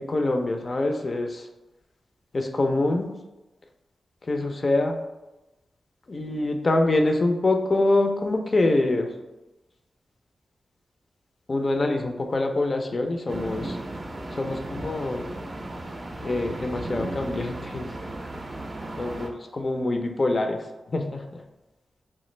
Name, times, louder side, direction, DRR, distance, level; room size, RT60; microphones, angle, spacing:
voice 1, 0.0-1.5 2.3-3.2 4.2-5.0 6.1-9.1 11.5-13.8 14.3-15.3 16.2-17.9 19.0-21.4, left 2 dB, 50° left, 4 dB, 0.4 m, -25 dB
sound 1, 13.3-19.3, right 1 dB, 45° right, 0.4 m, -35 dB
3.1 x 2.3 x 3.2 m, 1.0 s
cardioid pair, 50°, 0 cm